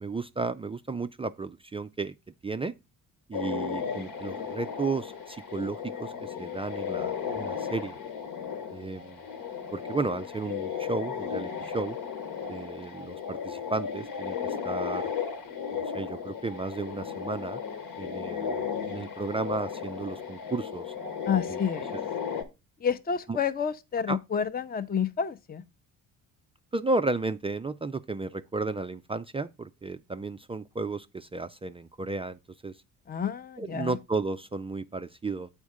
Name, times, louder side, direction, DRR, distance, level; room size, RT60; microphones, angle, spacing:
voice 1, 0.0-2.2 2.4-2.7 3.3-8.0 8.7-9.2 9.7-12.0 12.5-15.1 15.7-17.6 18.0-20.9 21.5-21.6 21.9-22.0 23.3-23.4 24.1-24.2 26.7-32.8 33.6-35.5, right 3 dB, 15° right, 0.3 m, -33 dB
sound 1, 3.3-22.4, left 7 dB, 70° left, 1.4 m, -35 dB
voice 2, 21.3-21.9 22.8-25.6 33.1-34.0, left 7 dB, 20° left, 0.6 m, -29 dB
7.1 x 4.4 x 4.7 m
hypercardioid pair, 55°, 41 cm